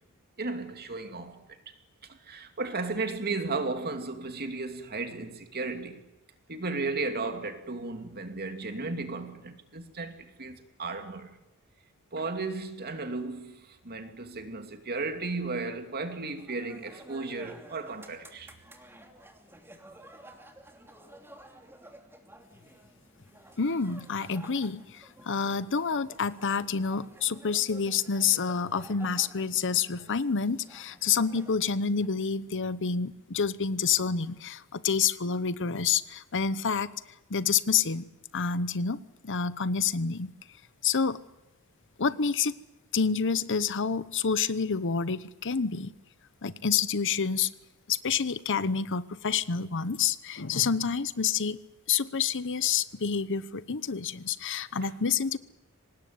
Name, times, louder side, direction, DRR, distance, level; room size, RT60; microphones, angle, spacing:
voice 1, 0.4-1.4 2.1-6.0 6.5-11.4 12.1-18.5 54.8-54.9, right 3 dB, 45° right, 2.7 m, -35 dB
sound 1, 16.4-32.1, right 1 dB, 10° right, 2.9 m, -52 dB
voice 2, 23.6-36.9 37.3-38.1 38.3-40.3 40.8-41.2 42.0-42.6 42.9-45.9 46.4-47.5 47.9-51.6 51.9-55.4, left 6 dB, 55° left, 1.0 m, -28 dB
24.5 x 19.5 x 9.6 m
head